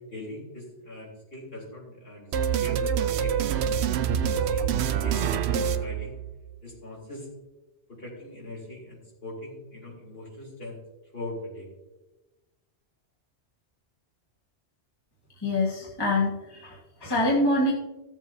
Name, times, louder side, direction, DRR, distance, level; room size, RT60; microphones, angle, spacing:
voice 1, 0.0-2.3 2.6-3.8 4.2-4.8 5.0-6.1 6.6-7.3 7.9-10.8 11.1-11.7, left 2 dB, 55° left, -5 dB, 3.7 m, -40 dB
sound 1, 2.3-6.6, right 8 dB, 70° right, 0.8 m, -26 dB
voice 2, 15.4-17.7, left 1 dB, 20° left, -4 dB, 1.6 m, -25 dB
16.0 x 7.2 x 2.7 m, 1.1 s
omnidirectional pair, 1.2 m